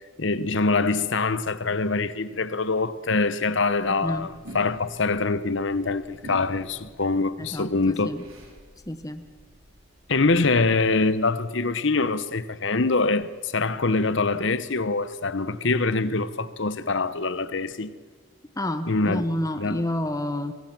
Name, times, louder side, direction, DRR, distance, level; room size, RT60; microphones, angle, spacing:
voice 1, 0.2-8.1 10.1-17.9 18.9-19.2 19.6-19.8, left 3 dB, 60° left, 1.0 m, -24 dB
sound 1, 3.7-11.0, right 1 dB, 80° right, 4.9 m, -48 dB
voice 2, 3.9-4.3 7.4-8.3 8.9-9.2 18.6-20.5, left 1 dB, 15° left, 1.1 m, -29 dB
24.0 x 23.0 x 6.1 m
head